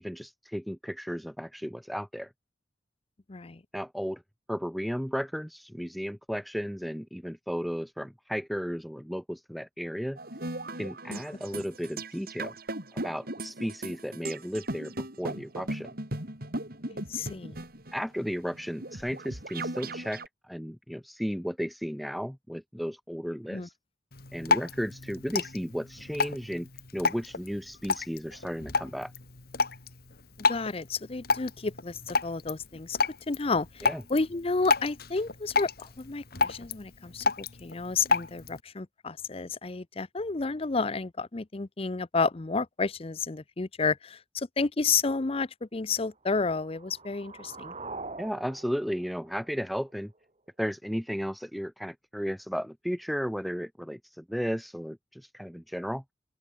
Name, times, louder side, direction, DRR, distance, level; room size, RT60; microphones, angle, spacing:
voice 1, 0.0-2.3 3.7-4.2 4.5-10.2 10.8-12.5 13.0-15.9 17.9-23.7 24.3-26.7 26.9-29.1 33.8-34.0 48.2-50.1 50.6-56.0, equal, ahead, 1.7 m, -34 dB
voice 2, 3.3-3.6 11.1-11.2 11.5-11.6 16.9-17.6 23.5-23.7 30.5-33.0 33.3-47.7, left 4 dB, 30° left, 0.6 m, -31 dB
sound 1, 10.2-20.3, right 1 dB, 55° right, 6.3 m, -38 dB
Drip, 24.1-38.6, left 4 dB, 55° left, 2.5 m, -31 dB
sound 2, 46.2-50.2, right 3 dB, 35° right, 5.6 m, -44 dB
open air
head